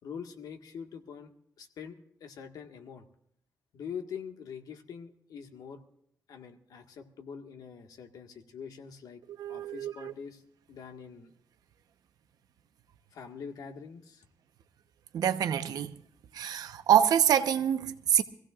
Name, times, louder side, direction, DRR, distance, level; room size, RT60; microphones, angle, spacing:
voice 1, 0.0-3.1 3.7-5.8 6.3-9.2 9.5-10.4 10.7-11.3 13.1-14.2, left 7 dB, 80° left, 1.7 m, -44 dB
voice 2, 9.4-10.1 15.1-15.9 16.3-18.2, right 9 dB, 85° right, 0.9 m, -26 dB
25.0 x 15.5 x 2.5 m
cardioid pair, 115°, 6 cm